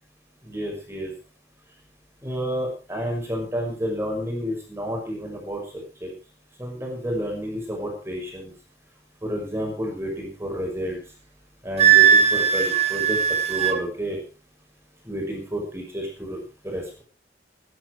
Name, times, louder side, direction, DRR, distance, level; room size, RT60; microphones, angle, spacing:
voice 1, 0.4-1.1 2.2-6.1 6.6-8.5 9.2-11.0 11.6-14.2 15.0-16.4 16.6-17.0, equal, 15° right, 1 dB, 6.0 m, -30 dB
Wind instrument woodwind instrument, 11.8-13.8, right 8 dB, 35° right, 1.7 m, -18 dB
19.5 x 11.0 x 4.7 m, 0.36 s
head